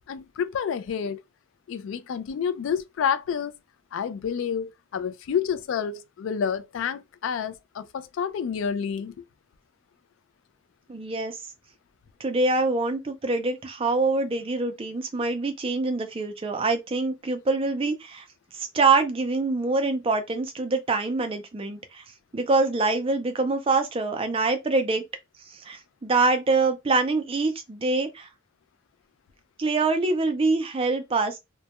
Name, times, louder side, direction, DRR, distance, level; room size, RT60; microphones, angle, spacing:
voice 1, 0.1-1.2 1.7-3.5 3.9-9.2, left 7 dB, 70° left, 0.3 m, -29 dB
voice 2, 10.9-11.4 12.2-18.2 18.5-22.0 22.3-25.0 25.5-28.3 29.6-31.4, right 3 dB, 25° right, 0.4 m, -25 dB
2.1 x 2.1 x 2.8 m
head